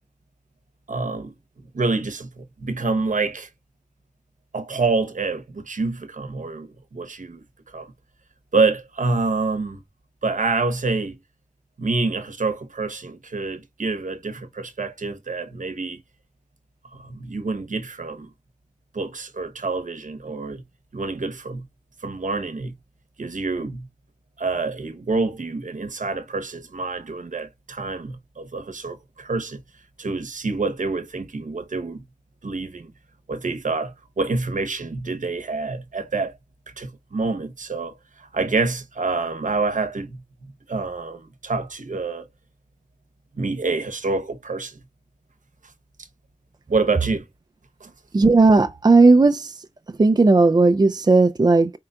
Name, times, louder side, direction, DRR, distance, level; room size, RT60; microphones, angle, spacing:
voice 1, 0.9-1.3 1.7-3.5 4.5-7.4 7.7-7.9 8.5-9.8 10.2-11.2 11.8-16.0 16.9-18.3 18.9-20.6 20.9-21.7 22.0-22.7 23.2-23.9 24.4-29.6 30.0-32.0 32.4-32.9 33.3-36.4 36.8-40.2 40.7-42.3 43.4-44.8 46.7-47.2 47.8-47.9, right 3 dB, 85° right, 0.8 m, -27 dB
voice 2, 48.1-49.7 50.0-51.7, right 3 dB, 35° right, 0.4 m, -15 dB
4.5 x 3.8 x 2.2 m
wide cardioid pair, 50°, 13 cm